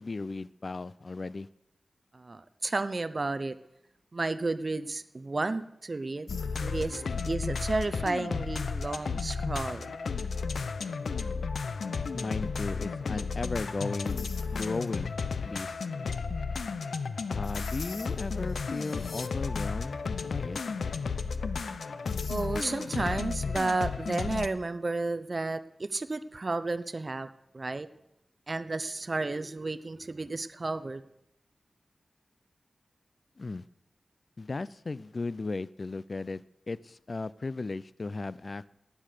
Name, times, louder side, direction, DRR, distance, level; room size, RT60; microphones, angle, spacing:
voice 1, 0.0-1.5 12.1-15.1 15.4-15.8 17.3-20.6 33.4-33.6 34.4-38.7, left 3 dB, 45° left, 0.5 m, -36 dB
voice 2, 2.1-3.6 4.1-6.3 6.6-9.9 22.3-27.3 27.5-27.9 28.5-31.0, right 3 dB, 40° right, 0.6 m, -32 dB
sound 1, 6.3-24.5, left 5 dB, 90° left, 0.8 m, -33 dB
18.0 x 9.7 x 6.7 m
wide cardioid pair, 100°, 0 cm